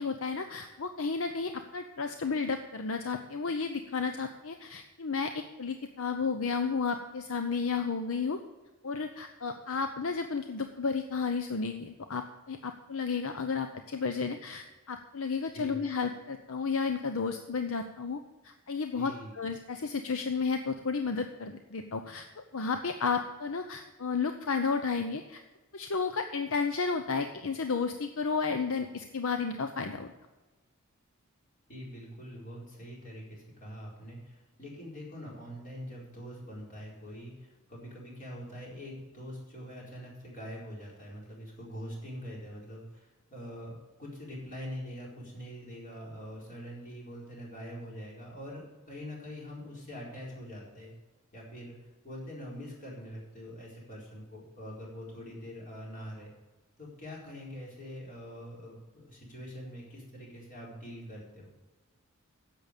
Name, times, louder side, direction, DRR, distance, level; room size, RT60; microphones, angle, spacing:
voice 1, 0.0-8.4 8.8-25.4 25.7-30.1, left 5 dB, 65° left, 7 dB, 0.7 m, -32 dB
voice 2, 18.9-19.3 31.7-50.9 51.3-51.8 52.0-56.3 56.8-61.5, equal, 40° left, -4 dB, 4.6 m, -44 dB
10.5 x 7.7 x 6.6 m, 1.2 s
head